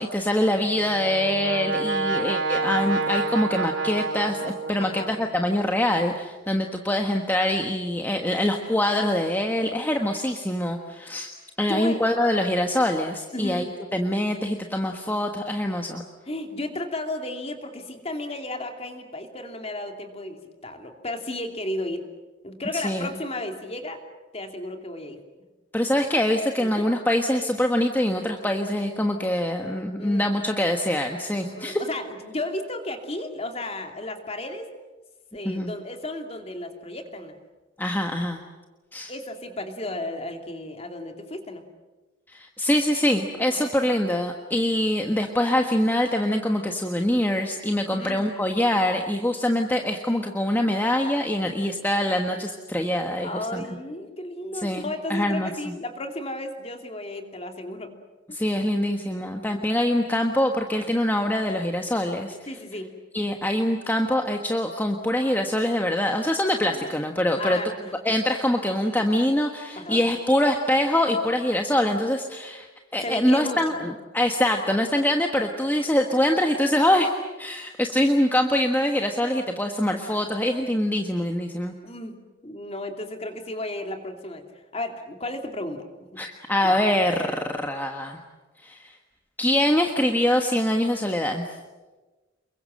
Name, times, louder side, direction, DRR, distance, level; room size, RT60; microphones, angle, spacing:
voice 1, 0.0-11.3 11.6-16.0 22.7-23.1 25.7-31.8 35.4-35.7 37.8-38.4 38.9-39.1 42.3-53.6 54.6-55.5 58.3-62.4 63.1-67.6 68.0-72.7 72.9-77.1 77.4-81.7 86.2-88.2 88.6-89.0 89.4-91.5, left 1 dB, 10° left, 3 dB, 1.4 m, -24 dB
Brass instrument, 0.6-5.3, right 3 dB, 60° right, 3.0 m, -28 dB
voice 2, 4.8-5.1 11.7-12.0 13.3-13.7 16.3-22.1 22.4-24.0 24.3-25.2 26.6-26.8 30.0-30.3 31.4-34.7 35.3-37.4 39.1-41.6 43.5-43.7 47.9-48.2 53.2-57.9 59.1-59.2 62.5-62.9 66.7-67.0 67.4-68.1 69.7-70.0 73.0-73.6 81.8-82.2 82.4-84.4 84.7-86.2 86.6-87.0, left 1 dB, 30° left, 5 dB, 2.8 m, -34 dB
29.0 x 22.5 x 7.7 m, 1.2 s
head